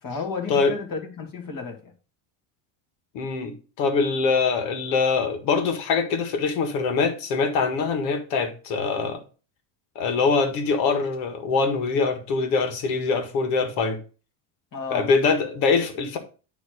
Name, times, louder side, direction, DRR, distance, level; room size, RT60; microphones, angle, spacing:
voice 1, 0.0-1.9 14.7-15.1, left 5 dB, 40° left, 2.1 m, -32 dB
voice 2, 3.1-9.2 9.9-14.0 14.9-16.2, left 4 dB, 90° left, 1.8 m, -23 dB
9.5 x 3.3 x 6.4 m
supercardioid pair, 110°, 50 cm